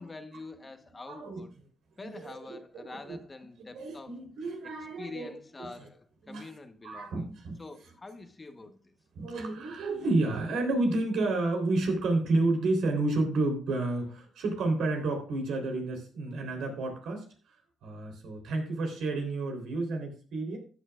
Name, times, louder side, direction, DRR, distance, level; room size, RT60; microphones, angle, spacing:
voice 1, 0.0-1.5 2.0-4.2 5.0-7.3 7.6-8.9, left 3 dB, 25° left, 1.1 m, -46 dB
voice 2, 1.1-1.4 2.0-3.2 3.7-5.3 5.6-5.9 6.2-6.5 6.8-7.6 9.1-20.6, right 2 dB, 75° right, 3.6 m, -31 dB
14.5 x 9.0 x 2.5 m
cardioid pair, 90°, 0 cm